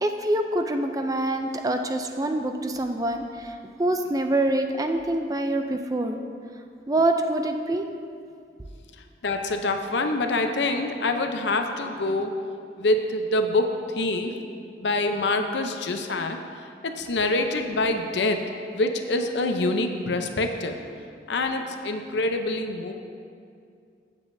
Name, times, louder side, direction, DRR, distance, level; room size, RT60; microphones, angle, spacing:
voice 1, 0.0-6.2 6.9-7.9, right 1 dB, 20° right, 6 dB, 0.4 m, -25 dB
voice 2, 9.0-12.4 12.8-14.3 14.8-18.4 18.7-20.8 21.3-22.9, left 2 dB, 75° left, 5 dB, 0.7 m, -26 dB
14.5 x 7.2 x 2.7 m, 2.4 s
head